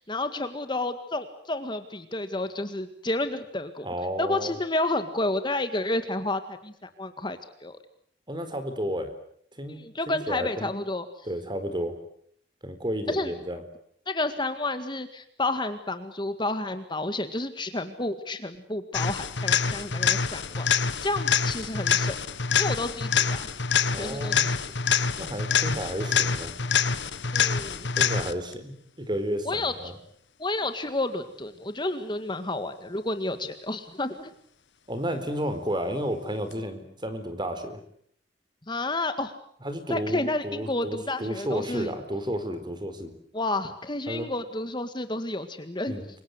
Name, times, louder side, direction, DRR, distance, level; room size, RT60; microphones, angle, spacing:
voice 1, 0.0-3.9 4.2-7.8 9.7-11.1 13.1-13.3 14.1-20.7 21.0-22.2 22.6-23.5 23.9-24.7 27.3-27.9 29.4-29.7 30.4-34.3 38.7-39.3 39.9-42.0 43.3-46.0, left 2 dB, 25° left, 9 dB, 1.9 m, -30 dB
voice 2, 3.8-4.5 8.3-9.1 9.6-9.8 10.1-10.7 11.3-12.0 12.6-13.6 19.7-19.8 23.9-24.5 25.2-26.5 28.0-29.9 34.9-37.8 39.6-43.1 44.1-44.3 45.9-46.1, equal, 25° right, 10 dB, 4.3 m, -32 dB
sound 1, 18.9-28.5 36.5-36.6, left 6 dB, 70° left, 1.5 m, -26 dB
29.5 x 24.5 x 8.1 m, 0.65 s
head